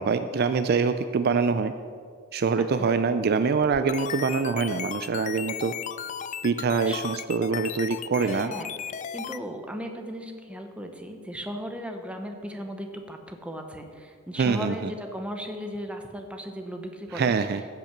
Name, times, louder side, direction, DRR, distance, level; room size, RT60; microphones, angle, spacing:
voice 1, 0.0-1.7 2.3-5.7 6.4-8.5 14.4-14.9 17.1-17.6, right 5 dB, 50° right, 10 dB, 0.4 m, -25 dB
voice 2, 2.6-3.0 6.9-7.0 8.2-17.4, equal, 5° right, 4 dB, 0.9 m, -37 dB
sound 1, 3.6-9.4, left 8 dB, 35° left, 0.3 m, -35 dB
15.0 x 5.9 x 5.9 m, 2.1 s
head